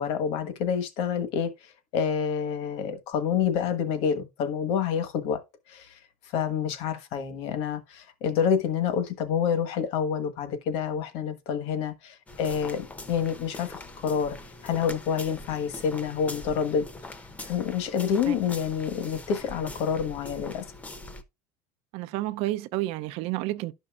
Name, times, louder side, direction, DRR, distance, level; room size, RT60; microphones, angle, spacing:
voice 1, 0.0-5.4 5.7-6.0 6.3-14.4 14.6-16.8 17.4-20.6, left 7 dB, 60° left, 1.4 m, -28 dB
sound 1, 12.3-21.2, left 2 dB, 15° left, 0.7 m, -42 dB
voice 2, 21.9-23.7, right 16 dB, 60° right, 0.6 m, -30 dB
12.0 x 5.4 x 2.4 m
cardioid pair, 145°, 11 cm